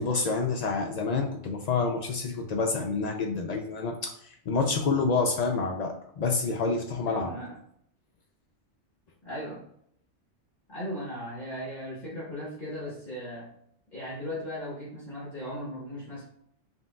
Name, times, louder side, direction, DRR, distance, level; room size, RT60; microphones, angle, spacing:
voice 1, 0.0-4.1 4.5-7.3, left 4 dB, 85° left, 2 dB, 0.3 m, -28 dB
voice 2, 7.1-7.6 9.2-9.6 10.7-13.5 13.9-16.2, equal, 40° left, -8 dB, 1.3 m, -37 dB
5.3 x 2.8 x 2.2 m, 0.69 s
omnidirectional pair, 1.3 m